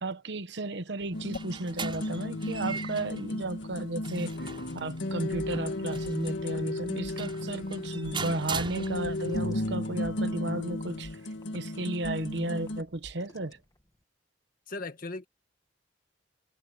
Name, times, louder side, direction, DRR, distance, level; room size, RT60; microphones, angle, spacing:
voice 1, 0.0-11.2 11.5-13.6, right 2 dB, 65° right, 1.1 m, -34 dB
sound 1, 1.0-9.4, right 5 dB, 25° right, 6.6 m, -41 dB
sound 2, 1.1-12.8, left 1 dB, 80° left, 1.9 m, -34 dB
sound 3, 6.0-14.0, equal, 20° left, 2.1 m, -54 dB
voice 2, 14.7-15.3, left 2 dB, 50° left, 2.0 m, -38 dB
head